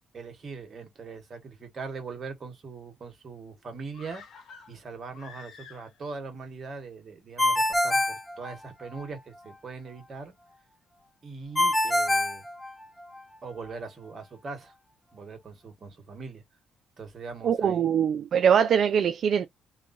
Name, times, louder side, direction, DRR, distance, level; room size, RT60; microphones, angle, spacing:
voice 1, 0.1-4.2 4.7-10.3 11.2-12.4 13.4-14.7 15.1-16.4 17.0-17.9, right 4 dB, 45° right, 1.6 m, -41 dB
sound 1, 3.9-6.2 6.5-6.6, left 6 dB, 70° left, 1.3 m, -49 dB
Ringtone, 7.4-9.0 11.6-13.2, left 1 dB, 10° left, 0.8 m, -25 dB
voice 2, 17.4-19.5, right 8 dB, 60° right, 0.4 m, -22 dB
3.1 x 2.6 x 2.6 m
cardioid pair, 90°, 0 cm